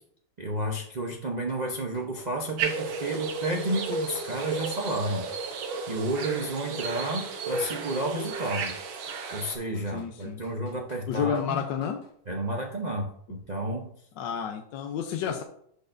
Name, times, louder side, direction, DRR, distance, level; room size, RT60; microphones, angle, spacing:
voice 1, 0.4-5.5 5.9-8.7 9.3-11.6 12.3-13.9, right 1 dB, 60° right, 1 dB, 0.4 m, -31 dB
sound 1, 1.4-2.6 3.4-6.5 7.0-8.8 9.1-12.1, left 3 dB, 55° left, 1.8 m, -53 dB
sound 2, 2.6-9.5, right 4 dB, 80° right, 1.8 m, -33 dB
voice 2, 9.9-10.4 11.1-12.0 14.2-15.4, left 8 dB, 70° left, 4 dB, 1.3 m, -30 dB
11.5 x 4.4 x 2.6 m, 0.65 s
omnidirectional pair, 2.2 m